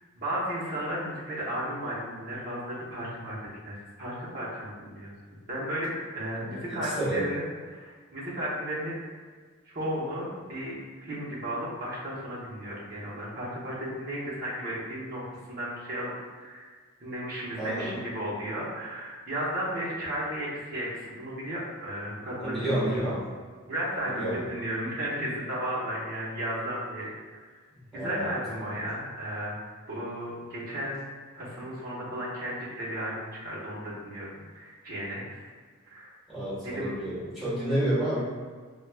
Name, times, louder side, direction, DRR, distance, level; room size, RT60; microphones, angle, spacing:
voice 1, 0.2-3.4 3.6-5.1 5.5-8.9 9.6-16.7 17.0-23.1 23.6-27.1 27.9-29.6 29.9-31.0 31.3-35.5 35.9-36.1 36.6-37.0 37.5-37.6, equal, 40° right, -8 dB, 0.8 m, -34 dB
voice 2, 6.4-7.2 17.6-17.9 22.4-23.2 24.0-24.4 27.9-28.3 36.3-38.2, right 1 dB, ahead, -11 dB, 1.3 m, -30 dB
4.5 x 2.3 x 2.2 m, 1.5 s
head